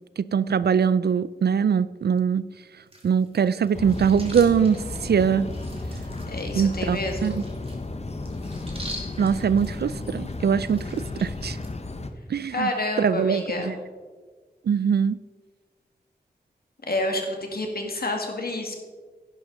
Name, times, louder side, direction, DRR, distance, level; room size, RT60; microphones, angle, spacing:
voice 1, 0.2-2.5 3.0-5.5 6.5-7.4 9.2-11.6 12.3-12.7 13.0-13.7 14.7-15.2, right 7 dB, 70° right, 17 dB, 0.4 m, -22 dB
sound 1, 2.9-11.7, equal, 35° right, 2.6 m, -45 dB
sound 2, 3.7-12.1, left 2 dB, 40° left, 0.9 m, -34 dB
voice 2, 6.3-7.4 12.5-13.8 16.9-18.7, left 1 dB, 60° left, 3 dB, 2.1 m, -29 dB
10.5 x 10.5 x 4.0 m, 1.4 s
cardioid pair, 45°, 17 cm